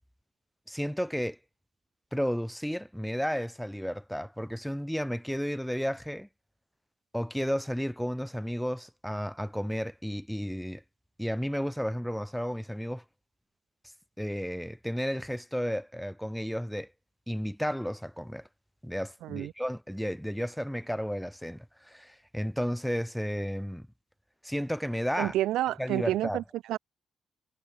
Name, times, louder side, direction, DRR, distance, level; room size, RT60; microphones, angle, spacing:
voice 1, 0.7-1.4 2.1-6.3 7.1-10.8 11.2-13.0 14.2-16.9 17.3-18.5 18.8-23.9 24.4-25.3 25.8-26.4, equal, ahead, 0.6 m, -33 dB
voice 2, 19.2-19.5 25.2-26.4 26.7-26.8, right 14 dB, 85° right, 0.4 m, -29 dB
cardioid pair, 90°, 0 cm